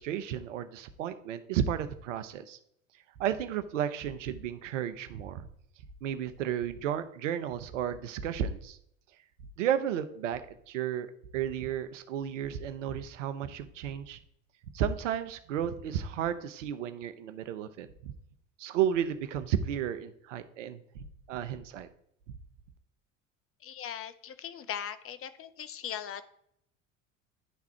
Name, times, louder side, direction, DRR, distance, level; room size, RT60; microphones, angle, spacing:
voice 1, 0.0-2.6 3.2-5.5 6.0-8.8 9.6-11.1 11.3-14.2 14.7-18.1 18.6-21.9, right 9 dB, 80° right, 11 dB, 0.7 m, -33 dB
voice 2, 23.6-26.3, left 9 dB, 35° left, 12 dB, 0.7 m, -39 dB
10.5 x 3.5 x 4.4 m, 0.71 s
hypercardioid pair, 70°, 37 cm